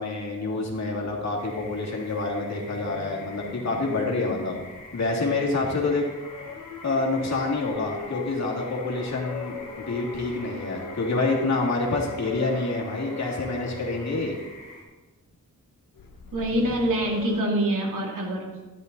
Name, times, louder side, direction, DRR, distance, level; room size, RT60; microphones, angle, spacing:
voice 1, 0.0-4.6 4.9-6.0 6.8-14.4, left 3 dB, 55° left, -2 dB, 2.6 m, -27 dB
sound 1, 0.9-1.3 2.4-4.8 5.5-14.5 15.9-17.4, left 5 dB, 85° left, 1.2 m, -41 dB
sound 2, 1.4-14.8, left 2 dB, 25° left, 3.7 m, -46 dB
voice 2, 16.3-18.5, right 1 dB, 70° right, -2 dB, 2.9 m, -25 dB
14.0 x 10.5 x 4.1 m, 1.2 s
wide cardioid pair, 155°, 33 cm